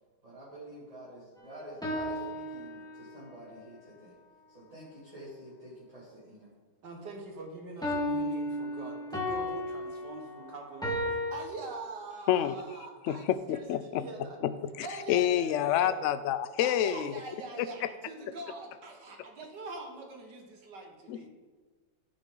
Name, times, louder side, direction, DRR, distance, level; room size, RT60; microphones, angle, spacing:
voice 1, 0.2-4.1 4.5-6.5, right 1 dB, 20° right, -8 dB, 2.4 m, -48 dB
sound 1, 1.4-3.2 7.8-11.3, left 1 dB, ahead, 1.7 m, -34 dB
voice 2, 6.8-14.4 14.8-16.0 16.6-21.3, right 3 dB, 75° right, 2 dB, 2.0 m, -43 dB
voice 3, 13.1-14.0 14.4-17.1 17.8-17.9 21.1-21.3, left 11 dB, 85° left, 13 dB, 0.6 m, -28 dB
15.5 x 6.2 x 3.8 m, 1.4 s
omnidirectional pair, 1.9 m